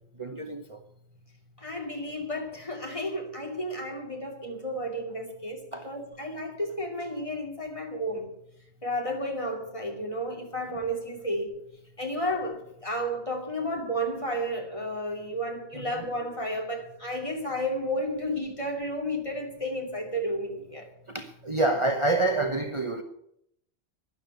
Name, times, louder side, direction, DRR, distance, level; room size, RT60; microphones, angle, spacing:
voice 1, 0.2-0.8 5.7-5.9 15.7-16.0 21.1-23.0, right 2 dB, 30° right, 1.0 m, -28 dB
voice 2, 1.6-8.3 8.8-11.6 12.0-20.9, equal, 30° left, 2.8 m, -32 dB
12.5 x 11.0 x 8.1 m
omnidirectional pair, 1.1 m